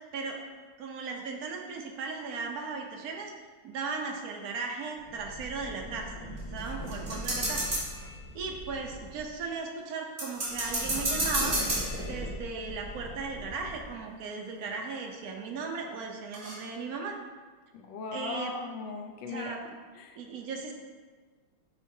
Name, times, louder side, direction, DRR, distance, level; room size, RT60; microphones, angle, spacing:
voice 1, 0.8-3.3 3.6-6.1 6.5-7.7 8.0-11.6 12.1-17.2 18.1-18.5 19.3-19.6 20.2-20.7, right 4 dB, 65° right, 2 dB, 0.9 m, -37 dB
sound 1, 5.0-9.4 10.4-14.0, equal, 25° left, 0.6 m, -41 dB
sound 2, 6.4-8.1 10.2-12.5 14.7-14.8 15.2-15.3 16.3-16.5, right 1 dB, 35° right, 1.8 m, -31 dB
voice 2, 17.7-19.5 19.9-20.2, left 4 dB, 70° left, 3 dB, 1.2 m, -38 dB
8.3 x 4.4 x 2.7 m, 1.5 s
omnidirectional pair, 2.4 m